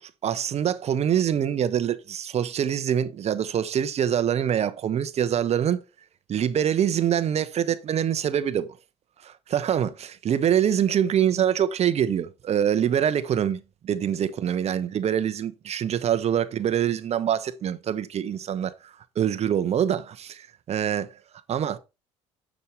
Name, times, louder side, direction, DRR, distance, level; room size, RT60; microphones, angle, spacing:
voice 1, 0.2-5.8 6.3-8.7 9.2-21.2 21.5-21.8, right 9 dB, 50° right, 1.0 m, -25 dB
6.9 x 6.3 x 4.4 m
supercardioid pair, 70°, 14 cm